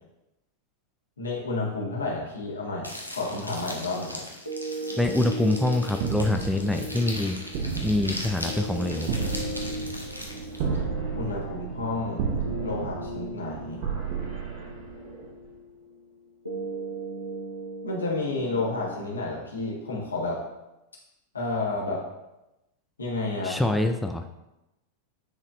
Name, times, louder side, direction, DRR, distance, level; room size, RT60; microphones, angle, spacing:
voice 1, 1.2-4.2 10.7-10.8 11.1-12.2 12.6-13.8 17.8-20.4 21.3-22.0 23.0-23.6, left 2 dB, 75° left, -3 dB, 1.7 m, -30 dB
sound 1, 2.8-10.6, equal, 90° right, 0.9 m, -39 dB
sound 2, 4.5-20.5, right 1 dB, 90° left, 0.8 m, -39 dB
voice 2, 5.0-7.4 7.8-9.1 23.4-24.2, left 2 dB, 5° left, 4 dB, 0.4 m, -25 dB
sound 3, 6.0-15.5, right 6 dB, 50° right, 1.0 m, -33 dB
9.6 x 4.1 x 2.6 m, 0.95 s
figure-of-eight pair, 90°, 0 cm